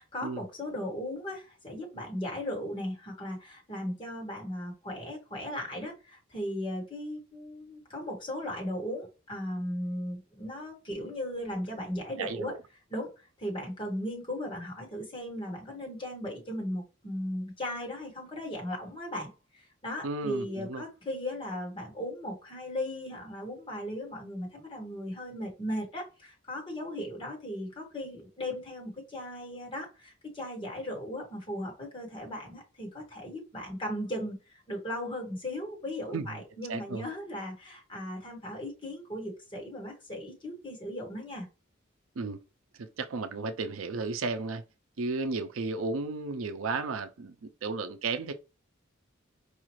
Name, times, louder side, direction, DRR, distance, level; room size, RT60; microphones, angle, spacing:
voice 1, 0.0-12.5 12.9-34.4 34.7-41.5, left 1 dB, 25° left, 1.6 m, -37 dB
voice 2, 12.2-12.6 20.0-20.8 36.1-36.3 36.7-37.0 42.2-42.4 42.8-44.6 45.0-48.3, right 3 dB, 85° right, 0.5 m, -34 dB
4.9 x 2.4 x 3.1 m
head